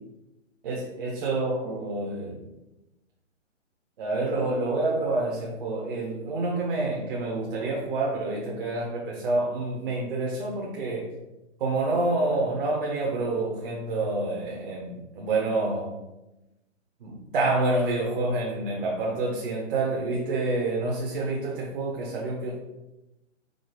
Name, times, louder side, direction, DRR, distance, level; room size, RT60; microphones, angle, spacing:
voice 1, 0.6-2.4 4.0-11.1 11.6-15.9 17.0-22.6, right 2 dB, 45° right, -2 dB, 0.8 m, -28 dB
4.9 x 2.3 x 3.8 m, 0.97 s
hypercardioid pair, 155°, 38 cm